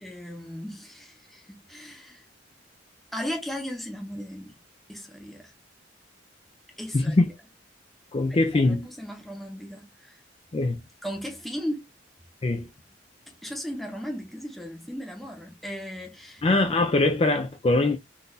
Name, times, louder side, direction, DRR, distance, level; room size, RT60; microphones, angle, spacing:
voice 1, 0.0-2.2 3.1-4.6 4.9-5.5 6.8-7.3 8.3-10.2 11.0-11.9 13.3-16.4, equal, ahead, 0.8 m, -36 dB
voice 2, 6.9-7.3 8.1-8.9 10.5-10.8 12.4-12.7 16.4-18.0, left 2 dB, 30° left, 0.4 m, -22 dB
3.9 x 2.6 x 2.5 m
head